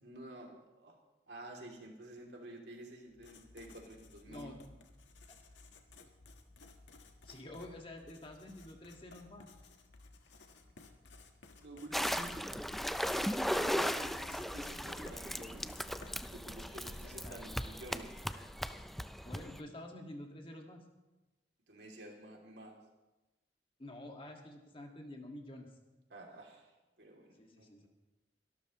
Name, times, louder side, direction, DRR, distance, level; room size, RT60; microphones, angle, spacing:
voice 1, 0.0-0.9 1.3-4.5 11.5-12.5 13.5-15.7 16.2-18.1 21.7-22.8 26.1-26.7 27.0-27.7, right 1 dB, 70° right, 0 dB, 2.9 m, -50 dB
Writing, 3.1-16.9, left 3 dB, 85° left, 1.5 m, -58 dB
voice 2, 4.3-4.6 7.3-9.5 16.7-17.4 19.1-20.8 23.8-25.7 27.4-27.9, left 1 dB, 30° left, 2 dB, 1.9 m, -49 dB
sound 1, 11.9-19.6, equal, ahead, 0.4 m, -37 dB
24.0 x 12.5 x 3.1 m, 1.1 s
head